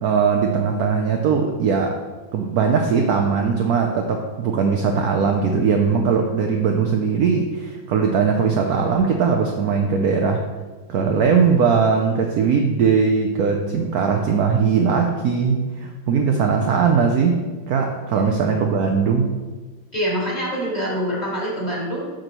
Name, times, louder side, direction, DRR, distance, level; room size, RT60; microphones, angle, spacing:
voice 1, 0.0-2.0 2.3-10.4 10.9-17.4 17.7-19.3, right 5 dB, 70° right, 3 dB, 0.9 m, -20 dB
voice 2, 19.9-22.1, equal, 20° left, -6 dB, 2.4 m, -25 dB
7.5 x 6.1 x 3.0 m, 1.3 s
omnidirectional pair, 2.0 m